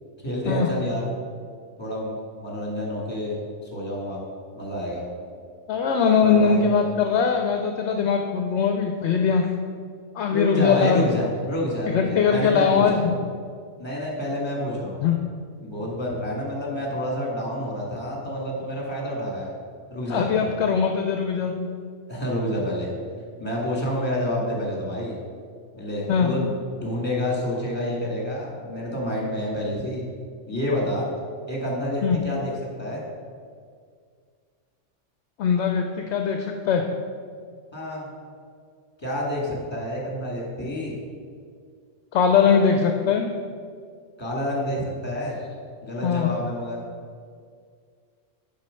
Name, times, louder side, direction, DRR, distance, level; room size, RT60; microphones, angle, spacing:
voice 1, 0.2-1.1 1.8-3.4 3.6-4.2 4.6-5.0 6.2-6.7 10.3-13.0 13.8-15.0 15.6-19.5 19.9-20.5 22.1-22.9 23.4-25.2 25.7-30.0 30.5-31.1 31.5-33.0 37.7-38.1 39.0-40.9 44.2-45.4 45.8-46.8, equal, 20° left, -3 dB, 1.8 m, -28 dB
voice 2, 5.7-9.5 10.1-11.0 11.9-13.1 15.0-15.2 20.1-21.7 26.1-26.3 32.0-32.2 35.4-36.8 42.1-43.3 46.0-46.3, left 6 dB, 70° left, 4 dB, 0.8 m, -21 dB
7.4 x 4.4 x 6.3 m, 2.1 s
omnidirectional pair, 1.3 m